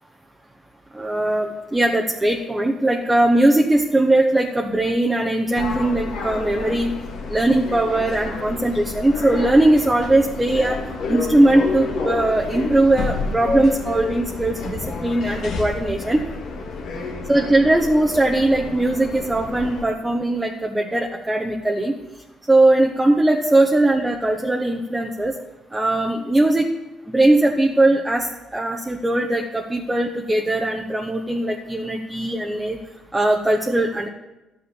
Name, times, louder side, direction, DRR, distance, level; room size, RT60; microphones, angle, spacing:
voice 1, 0.9-6.9 7.3-10.8 11.1-16.2 17.3-21.9 22.5-25.3 25.7-26.7 27.1-32.8 33.1-34.1, right 1 dB, 15° right, 1 dB, 1.1 m, -19 dB
sound 1, 5.5-19.8, left 3 dB, 75° left, 1.8 m, -29 dB
11.5 x 7.0 x 7.1 m, 1.0 s
cardioid pair, 80°, 0 cm